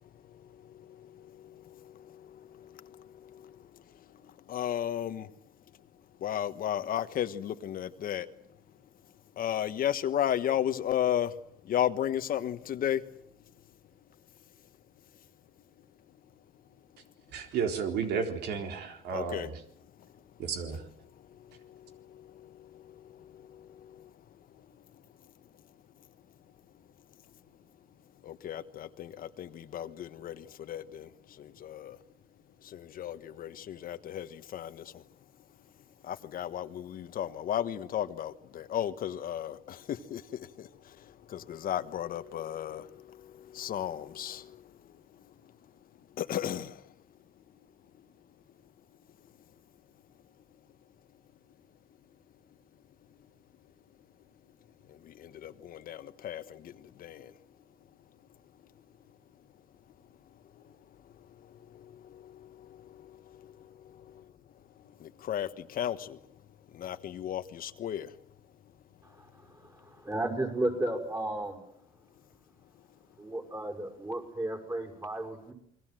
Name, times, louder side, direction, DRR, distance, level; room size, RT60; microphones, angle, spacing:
voice 1, 4.5-5.3 6.2-8.3 9.4-11.3 11.7-13.0 19.1-19.5 28.2-31.1 31.6-32.0 32.7-34.8 36.1-40.2 41.3-42.8 43.5-44.4 46.2-46.7 55.2-56.4 57.0-57.3 65.0-66.1 66.8-68.1, left 10 dB, 60° left, 1.4 m, -33 dB
voice 2, 17.3-19.6 20.4-20.9, right 6 dB, 80° right, 3.9 m, -33 dB
voice 3, 69.0-71.6 73.2-75.5, right 1 dB, 20° right, 6.2 m, -34 dB
28.5 x 22.5 x 7.8 m
cardioid pair, 110°, 17 cm